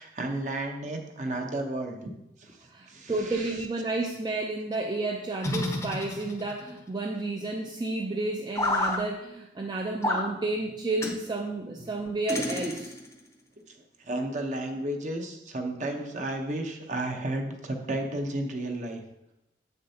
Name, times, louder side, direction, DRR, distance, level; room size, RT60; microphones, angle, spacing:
voice 1, 0.0-2.1 2.4-2.6 2.9-3.7 11.8-11.9 14.0-19.0, right 1 dB, 45° right, 4 dB, 0.9 m, -33 dB
voice 2, 2.7-12.9, right 2 dB, 25° right, 1 dB, 0.4 m, -31 dB
sound 1, 5.4-6.6 8.5-9.0 10.0-10.3 11.0-11.2 12.3-13.1, left 2 dB, 15° left, 0.6 m, -29 dB
7.7 x 6.8 x 2.8 m, 0.87 s
head